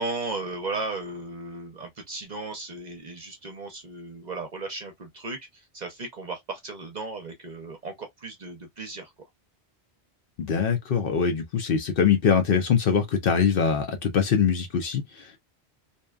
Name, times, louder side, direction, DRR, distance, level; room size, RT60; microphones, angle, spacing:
voice 1, 0.0-9.1, right 3 dB, 50° right, 0.7 m, -35 dB
voice 2, 10.4-15.4, left 6 dB, 60° left, 0.8 m, -23 dB
2.7 x 2.2 x 2.2 m
omnidirectional pair, 1.1 m